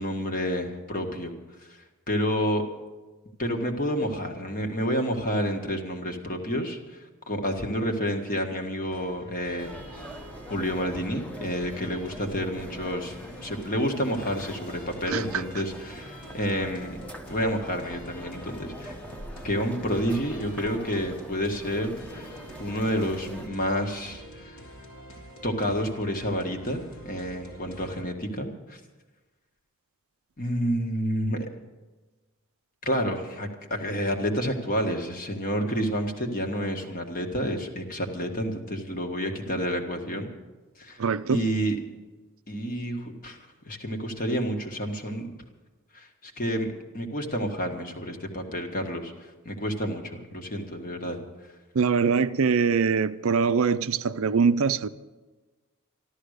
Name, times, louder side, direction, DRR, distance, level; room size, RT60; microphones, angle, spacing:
voice 1, 0.0-1.3 1.6-2.6 3.4-9.8 10.5-17.0 17.3-19.0 19.4-24.6 25.4-28.8 30.4-31.5 32.8-40.3 40.8-41.0 41.3-41.8 42.5-43.4 43.6-45.3 45.9-46.7 46.9-51.2, equal, 40° left, 1.7 m, -29 dB
sound 1, 8.9-28.0, equal, 70° left, 2.6 m, -46 dB
sound 2, 9.6-23.5, equal, 5° left, 0.9 m, -44 dB
voice 2, 41.0-41.4 51.7-54.9, right 5 dB, 65° right, 0.5 m, -23 dB
13.5 x 13.0 x 6.6 m
head